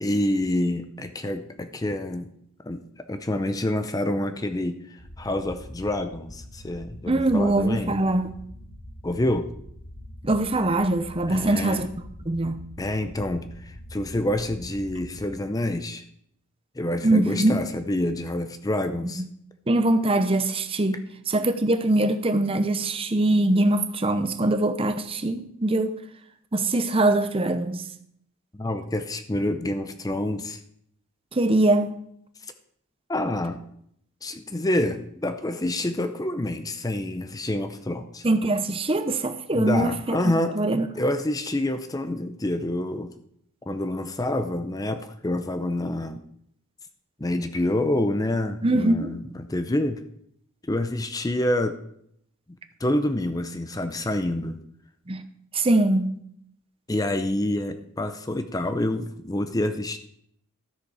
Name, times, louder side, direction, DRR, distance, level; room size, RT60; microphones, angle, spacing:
voice 1, 0.0-2.3 2.6-7.9 9.0-9.5 11.3-11.9 12.8-16.0 16.8-19.2 28.5-30.6 33.1-33.6 34.2-38.2 39.5-40.6 41.0-43.1 43.7-46.2 47.2-50.0 50.6-51.8 52.8-54.6 56.9-60.0, left 1 dB, 15° left, 0.6 m, -27 dB
sound 1, 5.0-15.3, left 1 dB, 55° left, 1.8 m, -43 dB
voice 2, 7.1-8.4 10.2-11.9 12.3-12.6 17.0-17.6 19.2-19.3 19.7-21.0 21.3-26.0 26.5-27.8 31.3-31.9 38.2-40.2 40.5-40.8 48.6-49.1 55.1-55.2 55.5-56.1, right 2 dB, 25° right, 0.7 m, -22 dB
12.5 x 6.8 x 4.8 m
head